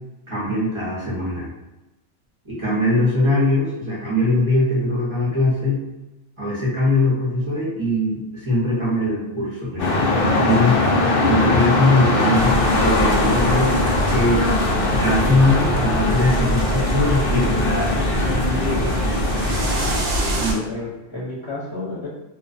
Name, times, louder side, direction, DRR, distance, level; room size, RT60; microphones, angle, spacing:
voice 1, 0.3-1.5 2.4-5.8 6.4-10.8 11.3-14.5 15.0-17.6 20.4-20.6, left 1 dB, 30° right, -7 dB, 0.7 m, -21 dB
sound 1, 9.8-20.0, left 2 dB, 60° left, 0.7 m, -21 dB
sound 2, 12.3-20.5, right 2 dB, 70° right, 0.8 m, -25 dB
voice 2, 18.5-18.9 20.1-22.1, left 2 dB, 25° left, -9 dB, 0.8 m, -31 dB
2.3 x 2.3 x 2.5 m, 1.0 s
omnidirectional pair, 1.3 m